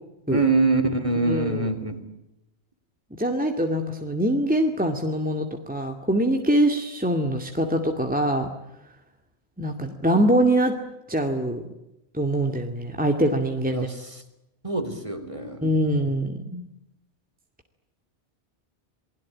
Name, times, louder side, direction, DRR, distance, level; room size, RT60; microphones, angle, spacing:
voice 1, 0.3-2.0 13.7-13.9 14.6-15.6, right 3 dB, 30° right, 8 dB, 3.6 m, -24 dB
voice 2, 1.2-1.7 3.1-8.5 9.6-10.8 11.1-11.7 12.1-13.9 15.6-16.6, right 1 dB, 5° right, 4 dB, 2.3 m, -23 dB
29.0 x 20.5 x 8.7 m, 0.89 s
omnidirectional pair, 1.2 m